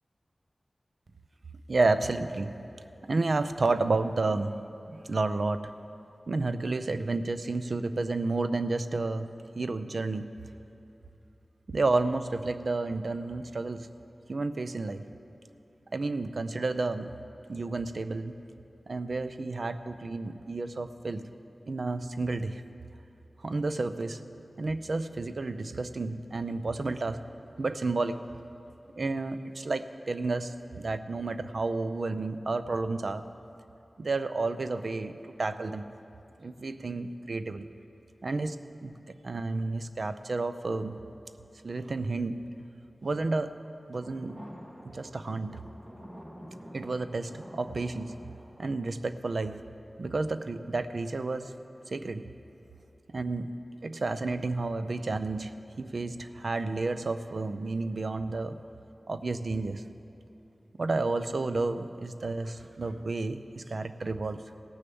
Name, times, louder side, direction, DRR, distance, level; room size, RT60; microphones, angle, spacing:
voice 1, 1.7-2.6 3.0-4.6 4.9-5.7 6.3-10.3 11.7-13.9 14.3-15.0 15.9-17.1 17.5-18.4 18.9-21.3 21.7-22.6 23.4-24.2 24.6-27.2 27.6-28.2 29.0-33.2 34.0-35.9 36.4-37.7 38.2-38.9 39.2-41.0 41.6-42.5 43.0-43.5 43.9-44.4 44.8-45.6 46.7-48.2 48.6-49.6 50.0-51.5 51.9-52.3 53.1-55.5 55.8-58.6 59.1-59.9 60.8-64.4, right 3 dB, 70° right, 11 dB, 0.5 m, -31 dB
sound 1, 44.0-49.4, equal, 25° right, 2.1 m, -48 dB
17.0 x 6.7 x 6.9 m, 2.9 s
wide cardioid pair, 85°, 0 cm